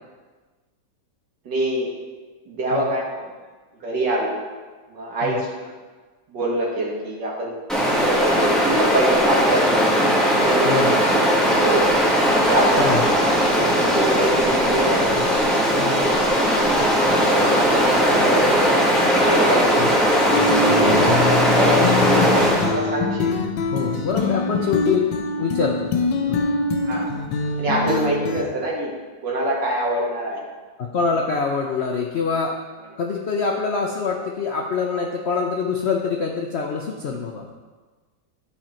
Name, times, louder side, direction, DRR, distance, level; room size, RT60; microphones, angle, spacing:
voice 1, 1.5-1.9 2.5-3.2 3.8-4.3 4.9-5.5 6.3-7.5 7.8-9.9 10.3-11.1 11.6-11.9 12.4-12.9 13.8-15.0 17.2-18.9 19.2-19.9 20.6-23.3 26.8-27.1 27.6-28.9 29.2-30.4, right 1 dB, 70° right, -3 dB, 2.3 m, -25 dB
Stream, 7.7-22.8, equal, ahead, 1.4 m, -18 dB
sound 1, 20.3-28.4, left 3 dB, 85° left, 1.4 m, -24 dB
voice 2, 23.7-25.1 25.4-25.9 26.3-26.4 30.8-32.5 33.0-37.5, left 5 dB, 70° left, 1 dB, 0.6 m, -25 dB
11.5 x 5.0 x 4.4 m, 1.4 s
omnidirectional pair, 2.0 m